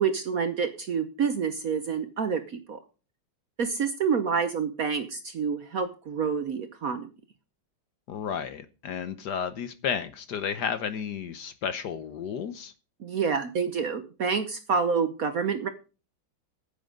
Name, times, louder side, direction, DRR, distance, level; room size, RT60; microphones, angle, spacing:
voice 1, 0.0-2.4 2.7-2.8 3.6-7.1 13.0-15.7, right 6 dB, 55° right, 9 dB, 1.0 m, -28 dB
voice 2, 8.1-12.7, left 7 dB, 60° left, 12 dB, 1.3 m, -32 dB
9.7 x 8.8 x 5.2 m, 0.34 s
omnidirectional pair, 2.3 m